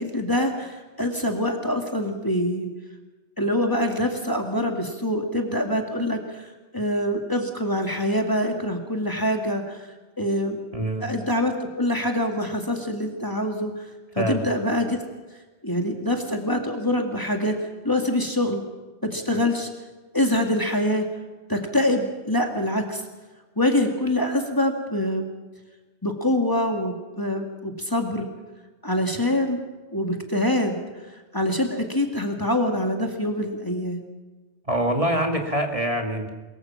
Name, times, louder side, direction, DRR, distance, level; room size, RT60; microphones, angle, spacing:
voice 1, 0.0-2.7 3.4-6.5 6.7-9.8 10.2-10.6 11.0-13.9 14.1-15.0 15.6-17.6 17.8-18.6 19.0-19.7 20.1-21.1 21.5-23.0 23.6-25.3 26.0-28.3 28.8-29.6 29.9-30.8 31.3-34.0, left 1 dB, 15° left, 3 dB, 2.2 m, -25 dB
voice 2, 10.7-11.1 14.2-14.4 34.7-36.3, right 1 dB, 30° right, 3 dB, 2.1 m, -25 dB
23.0 x 22.5 x 5.9 m, 1.3 s
omnidirectional pair, 1.2 m